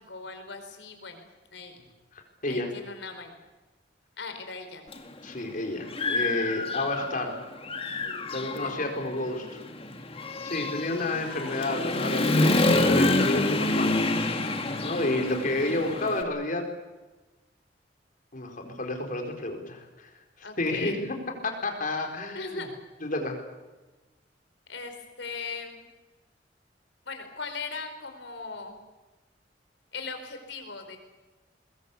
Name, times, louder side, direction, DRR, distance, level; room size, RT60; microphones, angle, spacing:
voice 1, 0.1-1.3 1.5-1.7 2.5-3.3 4.2-5.0 8.4-8.8 20.4-21.0 22.3-22.7 24.7-25.9 27.0-28.8 29.9-31.0, left 4 dB, 75° left, 6 dB, 4.7 m, -39 dB
voice 2, 2.1-2.7 5.2-7.4 8.3-9.6 10.4-14.6 14.8-16.7 18.3-20.1 20.6-21.2 21.4-22.6 23.0-23.4, left 2 dB, 50° left, 3 dB, 4.4 m, -30 dB
Human voice / Motorcycle, 4.9-5.0 5.5-7.3 7.6-16.2, left 2 dB, 35° left, 2.1 m, -27 dB
23.0 x 21.5 x 8.5 m, 1.2 s
head